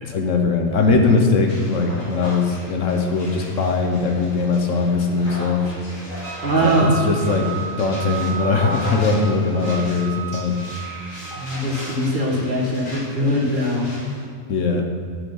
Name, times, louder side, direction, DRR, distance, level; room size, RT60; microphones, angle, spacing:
voice 1, 0.0-5.7 6.6-7.5 7.8-10.6 14.5-14.9, left 4 dB, 70° left, 3 dB, 1.2 m, -20 dB
sound 1, 1.5-14.2, left 1 dB, 40° left, 2.6 m, -37 dB
Wind instrument woodwind instrument, 6.2-11.6, right 8 dB, 75° right, 1.2 m, -34 dB
voice 2, 6.4-6.9 11.3-14.0, equal, 35° right, -4 dB, 1.8 m, -21 dB
8.0 x 7.3 x 5.5 m, 2.3 s
omnidirectional pair, 1.4 m